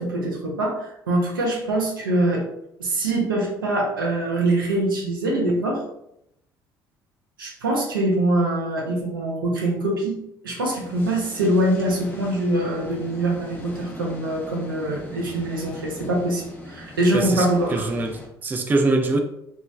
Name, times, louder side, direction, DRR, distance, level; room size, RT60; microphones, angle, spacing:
voice 1, 0.0-2.4 2.8-5.8 7.4-10.1 10.4-17.9, right 1 dB, 75° right, 0.7 m, -23 dB
sound 1, 10.7-18.3, left 1 dB, 15° left, 0.7 m, -41 dB
voice 2, 17.1-19.2, right 2 dB, 15° right, 0.3 m, -23 dB
3.0 x 2.9 x 2.3 m
figure-of-eight pair, 55°, 11 cm